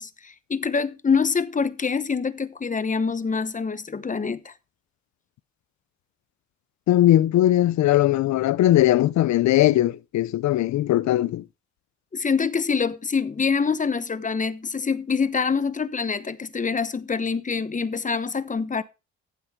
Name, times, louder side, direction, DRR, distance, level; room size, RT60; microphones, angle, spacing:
voice 1, 0.0-4.5 12.1-18.8, left 5 dB, 25° left, 1.0 m, -25 dB
voice 2, 6.9-11.4, left 14 dB, 70° left, 0.6 m, -19 dB
15.0 x 7.9 x 3.6 m
cardioid pair, 90°, 30 cm